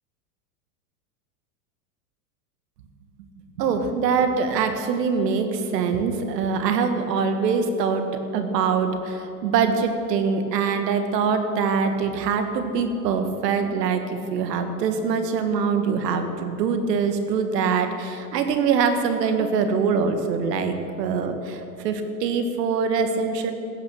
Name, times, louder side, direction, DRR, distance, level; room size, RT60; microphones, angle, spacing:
voice 1, 3.6-8.1 8.3-14.0 14.3-23.5, right 5 dB, 80° right, 7 dB, 1.6 m, -23 dB
15.0 x 8.6 x 6.4 m, 2.7 s
supercardioid pair, 155°, 48 cm